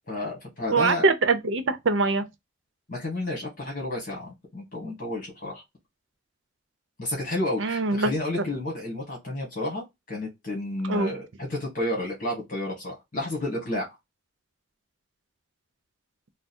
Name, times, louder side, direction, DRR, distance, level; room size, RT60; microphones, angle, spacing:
voice 1, 0.1-1.1 2.9-5.6 7.0-14.0, left 1 dB, 40° left, 1.4 m, -31 dB
voice 2, 0.7-2.3 7.6-8.1 10.9-11.1, right 3 dB, 70° right, 0.6 m, -23 dB
3.5 x 2.0 x 4.2 m
head